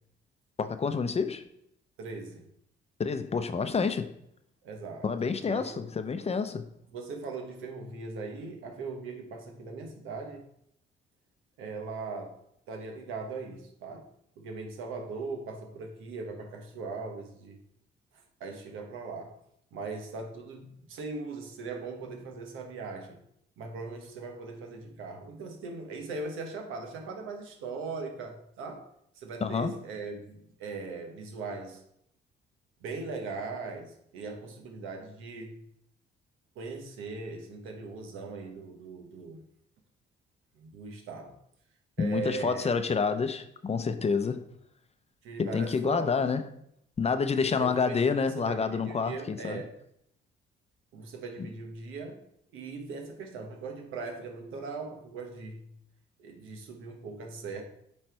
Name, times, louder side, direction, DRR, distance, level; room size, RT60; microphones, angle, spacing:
voice 1, 0.6-1.4 3.0-4.1 5.0-6.7 29.4-29.8 42.0-44.4 45.4-46.4 47.0-49.6, left 5 dB, 30° left, 0.6 m, -28 dB
voice 2, 2.0-2.5 4.6-5.1 5.5-5.9 6.9-10.4 11.6-12.4 12.7-14.1 14.4-17.6 18.4-19.3 19.7-23.2 23.6-28.9 29.1-31.8 32.8-35.6 36.5-39.4 40.6-41.4 42.0-42.8 45.2-46.3 47.6-49.7 50.9-52.3 52.5-55.7 56.2-57.6, right 4 dB, 90° right, 1.2 m, -39 dB
8.7 x 3.2 x 4.6 m
cardioid pair, 90°, 20 cm